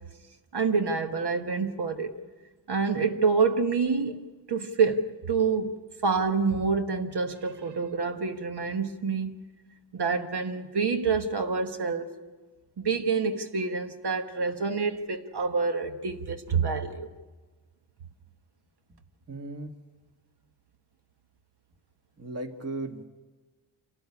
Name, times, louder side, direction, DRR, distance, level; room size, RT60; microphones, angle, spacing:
voice 1, 0.5-2.1 2.7-9.4 9.9-12.1 12.8-17.1, right 5 dB, 65° right, 1.4 m, -27 dB
voice 2, 19.3-19.7 22.2-23.1, right 2 dB, 35° right, 1.7 m, -36 dB
27.0 x 13.5 x 9.8 m
wide cardioid pair, 105°, 42 cm